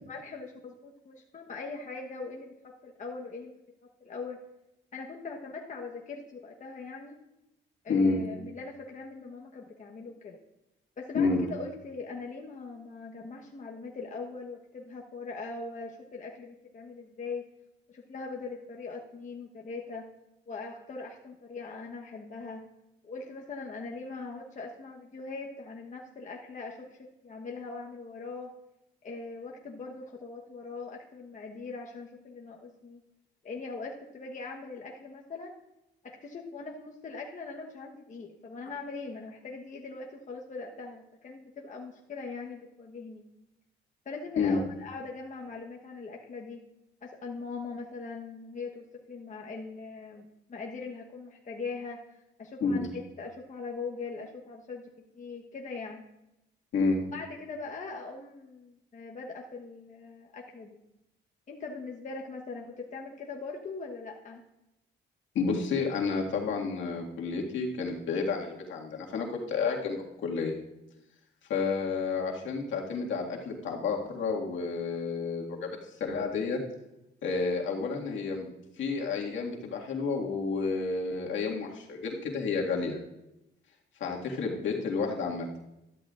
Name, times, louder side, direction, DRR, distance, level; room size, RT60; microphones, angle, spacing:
voice 1, 0.1-3.5 4.0-4.4 4.9-7.2 7.8-10.4 11.0-17.4 17.9-20.1 20.5-22.6 23.0-28.5 29.0-33.0 33.4-35.5 36.0-43.2 44.0-46.6 47.0-54.9 55.1-56.0 57.1-60.8 61.5-64.4, left 4 dB, 40° left, 0 dB, 1.1 m, -41 dB
voice 2, 7.9-8.2 11.1-11.4 44.4-44.6 52.6-52.9 56.7-57.0 65.4-70.6 71.5-76.6 77.2-78.5 78.8-83.0 84.0-85.5, left 4 dB, 70° left, 0 dB, 1.9 m, -30 dB
13.0 x 12.5 x 2.5 m, 0.90 s
cardioid pair, 90°, 20 cm